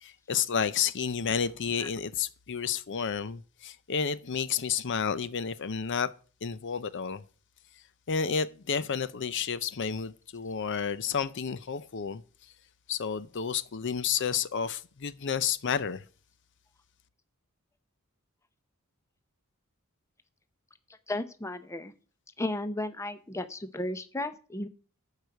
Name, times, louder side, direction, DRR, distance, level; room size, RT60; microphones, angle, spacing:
voice 1, 0.0-6.1 6.4-7.2 8.1-12.2 12.9-16.0, left 6 dB, 55° left, 0.6 m, -31 dB
voice 2, 21.1-21.9 22.4-24.7, left 1 dB, 15° left, 0.6 m, -34 dB
11.5 x 4.8 x 7.8 m
head